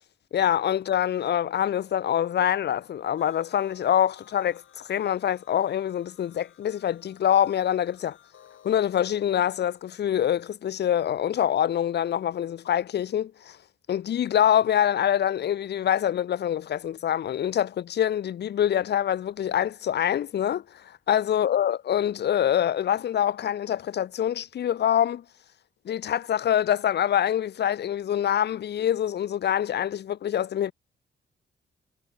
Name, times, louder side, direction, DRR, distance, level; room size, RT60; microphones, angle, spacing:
voice 1, 0.3-8.2 8.6-13.6 13.9-25.2 25.9-30.7, left 10 dB, 55° left, 0.5 m, -25 dB
sound 1, 3.1-10.0, left 9 dB, 75° left, 2.6 m, -57 dB
cardioid pair, 95°, 20 cm